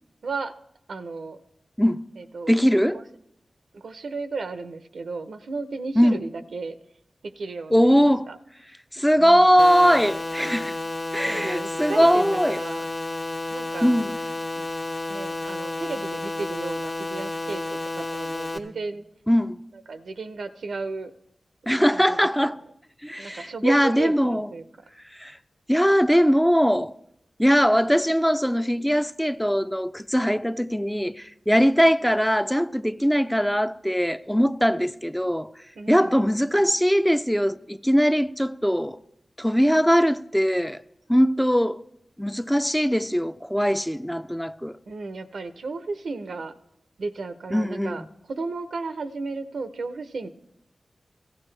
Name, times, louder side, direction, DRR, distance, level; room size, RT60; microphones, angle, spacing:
voice 1, 0.2-0.5 0.9-1.4 2.2-2.5 3.7-6.7 7.2-8.4 9.2-9.5 11.2-12.9 13.5-13.9 14.5-14.7 15.1-19.0 19.7-21.1 21.9-22.5 23.2-24.6 35.8-36.2 44.9-46.5 47.0-50.3, right 3 dB, 80° right, 0.6 m, -34 dB
voice 2, 2.5-3.0 6.0-6.2 7.7-8.3 8.9-10.8 11.1-12.6 13.8-14.1 19.3-19.6 21.7-22.6 23.0-24.5 25.1-25.4 25.7-26.9 27.4-35.5 35.9-39.0 39.4-40.8 41.1-41.8 42.2-44.8 47.5-48.0, equal, 5° left, 0.4 m, -21 dB
sound 1, 9.6-18.6, left 2 dB, 45° left, 1.3 m, -31 dB
16.5 x 14.0 x 3.3 m
cardioid pair, 40°, 0 cm